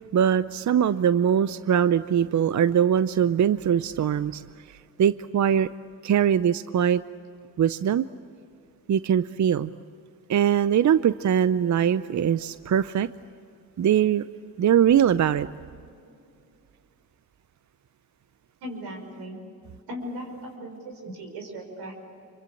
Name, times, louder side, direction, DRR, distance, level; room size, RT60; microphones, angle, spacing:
voice 1, 0.1-4.4 4.7-5.7 6.0-7.0 7.6-8.1 8.9-9.7 10.3-13.1 13.8-14.2 14.6-15.5, right 9 dB, 45° right, 14 dB, 0.7 m, -22 dB
voice 2, 18.6-19.4 19.9-21.9, equal, 85° right, 2 dB, 5.5 m, -37 dB
26.0 x 24.0 x 8.6 m, 2.5 s
supercardioid pair, 55°, 39 cm